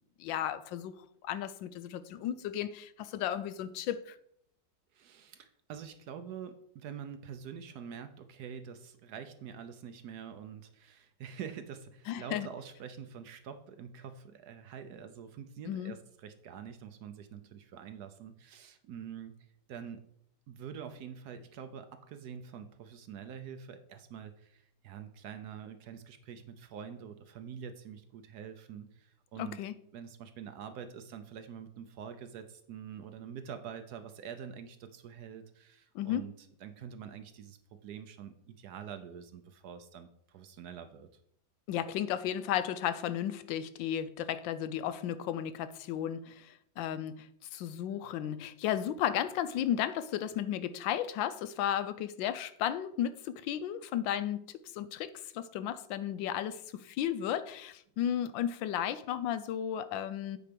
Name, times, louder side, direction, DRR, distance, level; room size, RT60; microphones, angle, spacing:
voice 1, 0.2-0.9 1.2-4.2 12.1-12.5 15.7-15.9 29.4-29.7 35.9-36.2 41.7-60.4, left 10 dB, 85° left, 1.3 m, -34 dB
voice 2, 4.9-19.3 19.7-20.0 20.5-29.6 29.9-36.3 36.6-41.1, right 7 dB, 65° right, 1.1 m, -46 dB
8.6 x 4.7 x 5.2 m
omnidirectional pair, 2.0 m